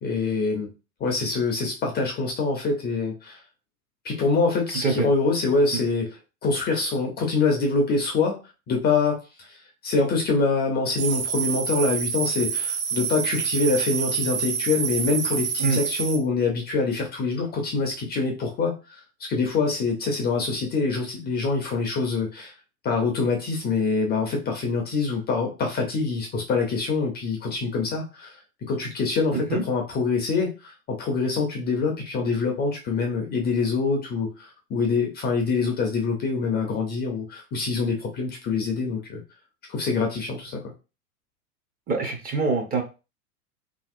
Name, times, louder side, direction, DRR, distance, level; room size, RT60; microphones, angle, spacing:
voice 1, 0.0-0.7 1.0-3.4 4.0-8.4 8.7-9.6 9.8-22.5 22.8-28.4 28.7-39.2 39.7-40.6, left 4 dB, 20° left, 2 dB, 0.5 m, -25 dB
sound 1, 11.0-16.2, right 7 dB, 45° right, 1.0 m, -27 dB
voice 2, 29.3-29.6 41.9-42.8, right 4 dB, 20° right, 3 dB, 0.6 m, -25 dB
2.8 x 2.7 x 2.4 m, 0.31 s
hypercardioid pair, 105°, 46 cm